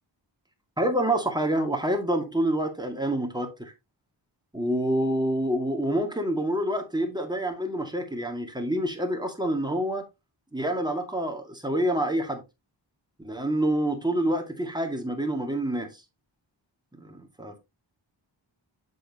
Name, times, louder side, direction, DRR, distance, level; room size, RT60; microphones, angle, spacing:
voice 1, 0.8-3.7 4.5-10.0 10.5-12.4 13.2-16.0 16.9-17.6, right 1 dB, 10° right, 2.1 m, -27 dB
7.6 x 6.5 x 2.9 m
wide cardioid pair, 75°, 44 cm